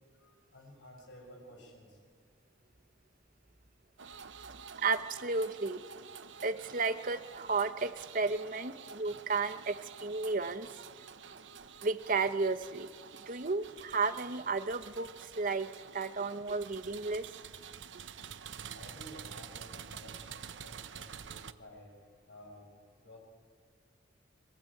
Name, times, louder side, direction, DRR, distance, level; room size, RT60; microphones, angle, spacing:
voice 1, 0.2-2.0 15.8-16.0 16.7-16.8 18.7-21.9 22.3-22.7 23.0-23.2, equal, 80° left, 2 dB, 7.0 m, -54 dB
sound 1, 4.0-21.5, right 7 dB, 85° right, 0.9 m, -49 dB
voice 2, 4.8-5.8 6.4-10.7 11.8-12.9 13.1-17.2, right 4 dB, 50° right, 10 dB, 1.1 m, -33 dB
25.0 x 23.0 x 8.8 m, 2.3 s
head